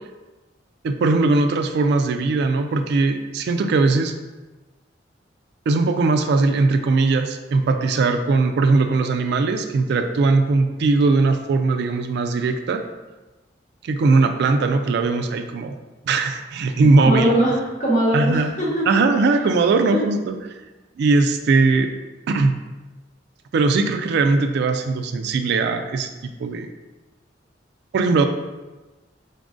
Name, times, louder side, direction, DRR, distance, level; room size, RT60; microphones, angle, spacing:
voice 1, 0.8-4.1 5.7-12.8 13.8-15.7 16.0-17.3 18.1-18.5 18.9-20.3 21.0-21.9 22.3-22.5 23.5-26.7 27.9-28.3, right 3 dB, 65° right, 7 dB, 0.3 m, -19 dB
voice 2, 17.0-18.8 19.8-20.0, equal, 45° left, -5 dB, 1.2 m, -21 dB
3.9 x 3.6 x 2.5 m, 1.2 s
head